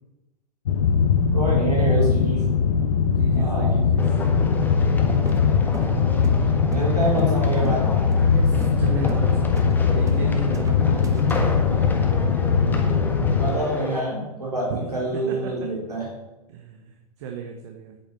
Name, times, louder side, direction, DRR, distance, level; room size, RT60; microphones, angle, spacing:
sound 1, 0.7-13.5, left 6 dB, 60° left, 1.3 m, -20 dB
voice 1, 1.3-2.5 3.3-3.7 6.6-7.9 12.6-13.0 13.3-16.1, right 1 dB, 85° right, -4 dB, 3.7 m, -26 dB
voice 2, 3.1-4.2 8.3-12.0 14.7-15.8 16.5-18.0, right 6 dB, 45° right, 3 dB, 1.5 m, -34 dB
sound 2, 4.0-14.0, left 2 dB, 10° left, 1.5 m, -33 dB
sound 3, 5.3-7.4 7.6-7.8 8.1-8.3 8.6-8.8 9.1-9.3 9.6-10.3 10.5-11.5, right 4 dB, 15° right, 1.2 m, -37 dB
9.1 x 9.0 x 7.4 m, 1.0 s
figure-of-eight pair, 100°, 20 cm